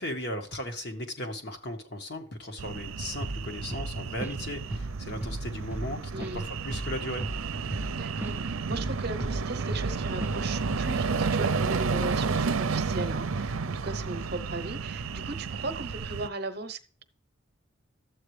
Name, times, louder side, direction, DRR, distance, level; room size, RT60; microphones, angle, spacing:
voice 1, 0.0-7.2, left 1 dB, 50° left, 1.7 m, -36 dB
sound 1, 2.6-16.3, right 4 dB, 90° right, 0.6 m, -31 dB
Drum kit / Drum, 3.2-3.5 3.7-4.5 4.7-5.0 5.2-8.4 8.7-10.0 10.2-10.4 10.7-11.1, right 1 dB, 10° right, 0.4 m, -35 dB
voice 2, 6.1-6.5 7.9-17.0, right 2 dB, 50° right, 0.9 m, -37 dB
12.5 x 8.2 x 3.3 m
head